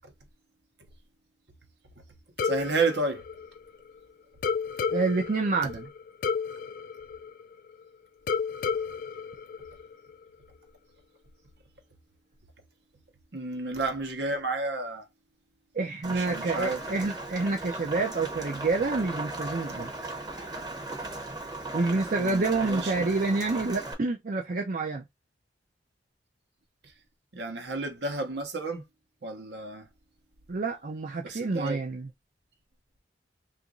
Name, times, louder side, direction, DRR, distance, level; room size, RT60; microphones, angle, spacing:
sound 1, 2.4-4.0 4.4-7.8 8.3-10.2, left 6 dB, 50° left, 0.3 m, -32 dB
voice 1, 2.4-3.2 13.3-15.1 16.1-16.8 22.2-23.1 27.3-28.8 29.2-29.9 31.2-31.8, right 3 dB, 70° right, 1.0 m, -31 dB
voice 2, 4.9-5.9 15.7-19.9 21.7-25.0 30.5-32.1, right 3 dB, 50° right, 0.5 m, -28 dB
Rain, 16.0-23.9, right 2 dB, 25° right, 0.8 m, -37 dB
2.9 x 2.5 x 3.8 m
head